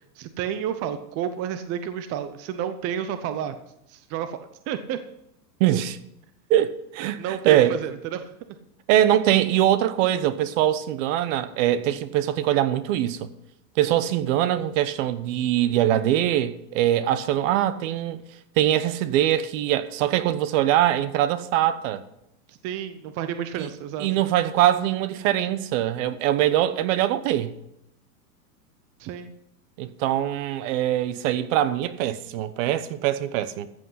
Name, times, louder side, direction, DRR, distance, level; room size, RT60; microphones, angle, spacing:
voice 1, 0.2-3.6 3.9-4.4 4.7-5.0 7.2-8.3 22.5-24.1 29.0-29.3, right 9 dB, 30° right, 0.7 m, -30 dB
voice 2, 5.6-6.0 6.5-7.8 8.9-13.3 13.8-18.2 18.6-22.0 23.6-23.7 24.0-27.5 29.8-33.7, right 12 dB, 50° right, 1.0 m, -22 dB
14.0 x 7.8 x 5.7 m
hypercardioid pair, 130°, 50 cm